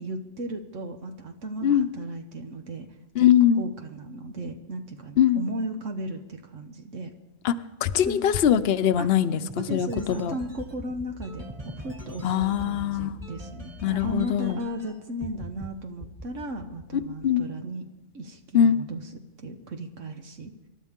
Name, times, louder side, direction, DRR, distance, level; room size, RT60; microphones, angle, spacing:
voice 1, 0.0-2.9 3.2-3.3 3.6-7.1 8.0-8.3 9.0-9.1 9.6-17.9 18.1-20.5, right 1 dB, 75° right, 4 dB, 1.5 m, -36 dB
voice 2, 3.2-3.6 5.2-5.4 7.4-7.5 7.8-10.3 12.2-13.1 13.8-14.6 17.2-17.4 18.5-18.8, left 9 dB, 55° left, 11 dB, 0.9 m, -22 dB
sound 1, 9.5-14.9 15.2-15.7 16.0-17.5, equal, 30° right, 2.4 m, -41 dB
27.5 x 12.5 x 3.7 m, 1.0 s
omnidirectional pair, 1.3 m